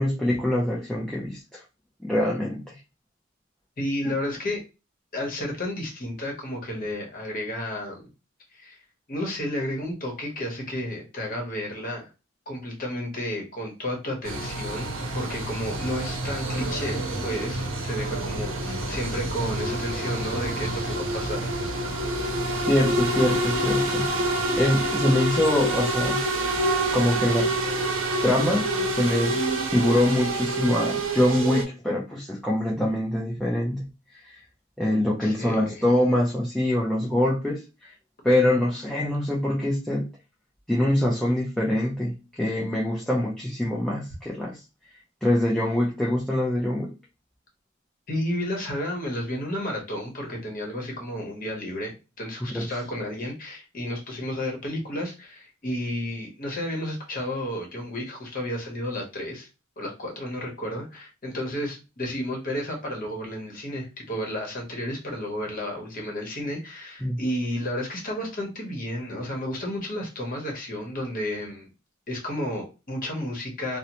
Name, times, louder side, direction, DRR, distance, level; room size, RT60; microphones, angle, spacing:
voice 1, 0.0-1.4 2.0-2.8 4.1-4.2 22.7-24.1 24.6-26.2 26.9-27.6 28.2-29.4 29.7-33.9 34.2-34.4 34.8-37.9 38.2-40.1 40.7-44.6 45.2-46.9 52.5-52.6 67.0-67.2, left 1 dB, 5° left, 0.4 m, -24 dB
voice 2, 3.8-4.6 5.1-8.1 8.5-8.8 9.1-12.1 12.5-14.9 15.1-21.7 22.1-22.2 35.2-35.8 48.1-59.5 59.8-71.7 72.1-73.8, left 1 dB, 45° left, 0.9 m, -32 dB
sound 1, 14.2-31.6, right 1 dB, 75° right, 0.6 m, -27 dB
2.7 x 2.0 x 2.9 m
head